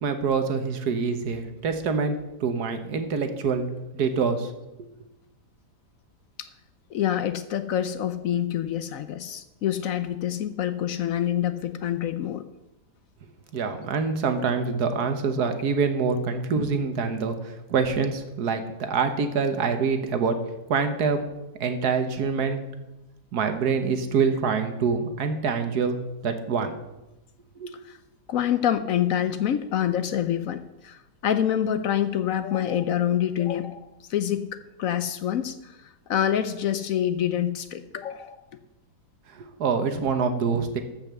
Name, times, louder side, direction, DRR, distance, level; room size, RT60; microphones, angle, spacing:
voice 1, 0.0-3.7 3.9-4.5 13.5-20.4 20.7-21.3 21.6-22.6 23.3-26.0 26.2-26.7 27.6-27.7 39.3-40.8, right 5 dB, 75° right, 8 dB, 1.6 m, -25 dB
voice 2, 6.9-12.4 27.9-28.0 28.3-34.5 34.8-38.4, left 10 dB, 65° left, 11 dB, 0.9 m, -26 dB
13.5 x 5.5 x 6.8 m, 0.97 s
omnidirectional pair, 1.7 m